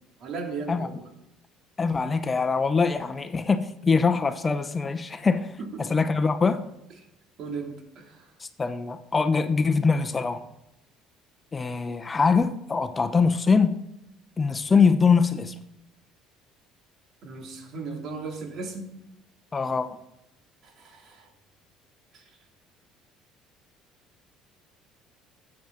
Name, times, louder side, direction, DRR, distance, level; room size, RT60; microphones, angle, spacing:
voice 1, 0.2-1.1 5.6-5.9 7.4-8.3 17.2-18.9 20.6-21.3 22.1-22.4, right 4 dB, 60° right, 2 dB, 2.8 m, -36 dB
voice 2, 1.8-5.5 5.9-6.6 8.4-10.4 11.5-13.8 14.4-15.5 19.5-20.0, left 5 dB, 25° left, 9 dB, 0.8 m, -23 dB
13.0 x 8.8 x 3.9 m, 0.85 s
hypercardioid pair, 70°, 0 cm